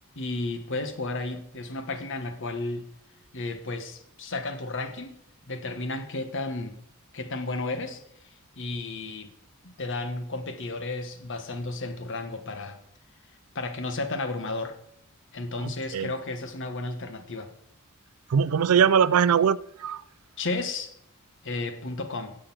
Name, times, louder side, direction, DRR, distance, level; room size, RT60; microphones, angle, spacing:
voice 1, 0.1-2.9 3.3-5.1 5.5-6.8 7.1-8.0 8.6-9.3 9.6-12.8 13.5-14.8 15.3-17.5 20.4-20.9 21.4-22.4, left 2 dB, 60° left, 8 dB, 1.3 m, -33 dB
voice 2, 15.6-16.1 18.3-20.0, right 7 dB, 70° right, 20 dB, 0.4 m, -22 dB
11.0 x 7.7 x 6.1 m, 0.72 s
head